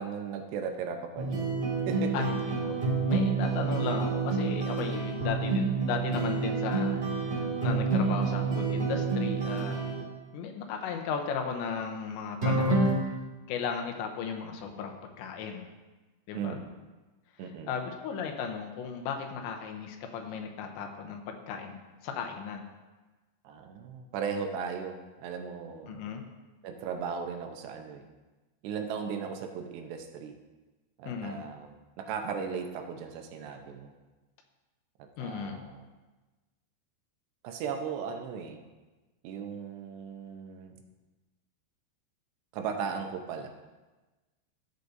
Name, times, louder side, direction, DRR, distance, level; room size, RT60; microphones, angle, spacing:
voice 1, 0.0-1.5 1.9-2.3 16.3-16.6 17.4-17.7 23.4-26.0 26.6-28.1 28.6-30.3 31.0-33.9 35.0-35.9 37.4-38.6 39.2-40.7 42.5-43.5, right 6 dB, 75° right, 4 dB, 2.9 m, -37 dB
sound 1, 1.1-10.0 12.4-12.9, right 4 dB, 35° right, 0.8 m, -28 dB
voice 2, 2.1-2.8 3.1-9.8 10.3-13.2 13.5-15.7 16.3-16.6 17.7-22.6 25.9-26.2 31.0-31.4 35.2-35.6, left 6 dB, 85° left, 3 dB, 3.1 m, -36 dB
14.5 x 8.2 x 2.7 m, 1.2 s
omnidirectional pair, 5.2 m